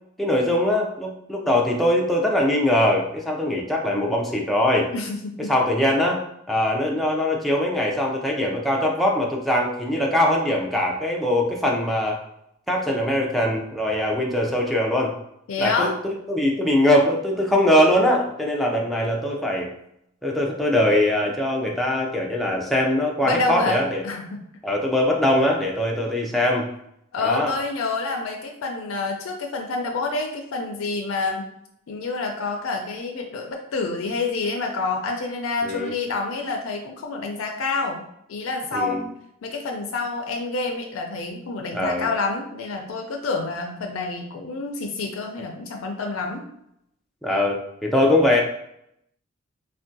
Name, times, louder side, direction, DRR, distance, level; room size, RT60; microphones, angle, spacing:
voice 1, 0.2-4.9 5.5-6.2 6.5-12.2 12.7-15.1 15.6-15.9 16.3-19.7 20.2-24.0 24.6-26.7 27.2-27.5 35.6-35.9 38.7-39.0 41.7-42.1 47.2-48.4, left 1 dB, ahead, -2 dB, 0.4 m, -22 dB
voice 2, 4.9-5.5 15.5-15.9 23.2-24.4 27.1-31.4 31.9-38.0 38.3-39.1 39.4-46.5, left 3 dB, 80° left, 2 dB, 0.4 m, -28 dB
3.4 x 2.2 x 2.6 m, 0.77 s
head